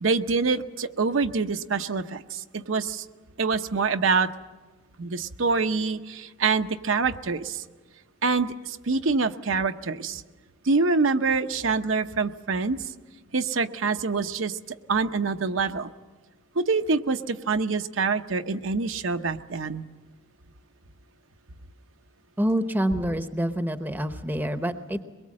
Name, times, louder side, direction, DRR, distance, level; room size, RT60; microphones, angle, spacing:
voice 1, 0.0-3.0 3.4-4.3 5.0-7.6 8.2-10.2 10.6-12.8 13.3-14.6 14.9-15.9 16.5-19.8, right 4 dB, 80° right, 7 dB, 0.8 m, -25 dB
voice 2, 22.4-25.0, equal, 10° right, 8 dB, 0.8 m, -27 dB
22.5 x 22.0 x 7.5 m, 1.3 s
head